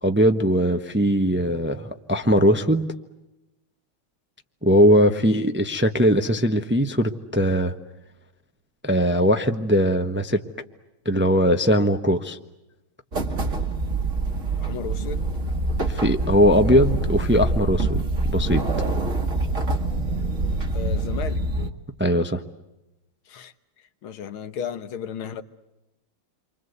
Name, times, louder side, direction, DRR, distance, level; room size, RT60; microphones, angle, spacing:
voice 1, 0.0-2.8 4.6-7.7 8.8-10.4 11.0-12.4 15.9-18.0 18.3-18.6 22.0-22.4, equal, 10° right, 0.8 m, -20 dB
sound 1, 13.1-21.7, right 2 dB, 40° right, 1.9 m, -25 dB
voice 2, 14.6-15.3 20.7-21.4 23.3-23.5 24.0-25.4, left 8 dB, 80° left, 2.0 m, -34 dB
29.0 x 25.0 x 8.1 m
omnidirectional pair, 2.3 m